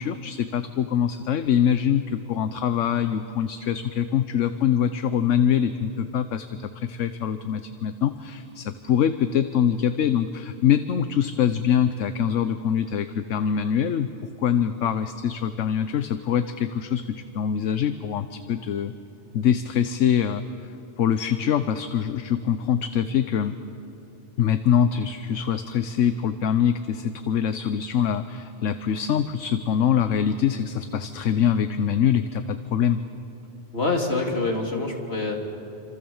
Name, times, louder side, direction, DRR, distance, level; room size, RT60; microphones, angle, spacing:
voice 1, 0.0-14.1 14.4-18.9 19.3-20.4 21.0-23.6 24.4-33.0, left 8 dB, 70° left, 10 dB, 1.2 m, -24 dB
voice 2, 33.7-35.4, left 3 dB, 50° left, 1 dB, 3.5 m, -25 dB
27.5 x 26.5 x 7.2 m, 2.8 s
omnidirectional pair, 1.3 m